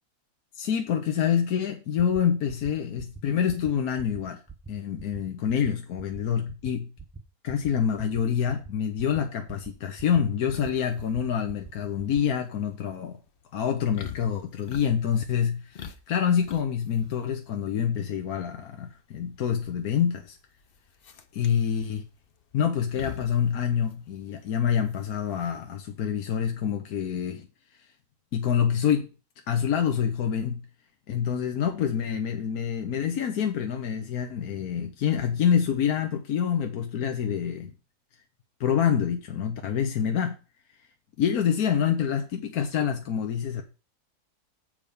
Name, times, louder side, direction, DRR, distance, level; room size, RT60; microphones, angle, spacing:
voice 1, 0.6-4.4 4.7-6.9 7.4-13.2 13.5-20.4 21.3-22.1 22.5-27.5 28.3-29.1 29.5-30.6 31.1-37.7 38.6-40.4 41.2-43.6, left 8 dB, 70° left, 1.3 m, -26 dB
sound 1, 2.0-2.2 2.5-2.7 3.0-3.2 3.5-3.7 4.0-4.2 4.5-4.7 5.0-5.2 5.5-5.7 6.0-6.2 6.5-6.7 7.0-7.2 7.5-7.7 8.0-8.2 8.5-8.7 9.0-9.2 9.5-9.7 10.0-10.2 10.5-10.7 11.0-11.2 11.5-11.7 12.0-12.2, right 4 dB, 25° right, 0.4 m, -43 dB
sound 2, 10.5-26.1, left 7 dB, 45° left, 0.8 m, -46 dB
7.5 x 5.0 x 6.9 m
omnidirectional pair, 1.7 m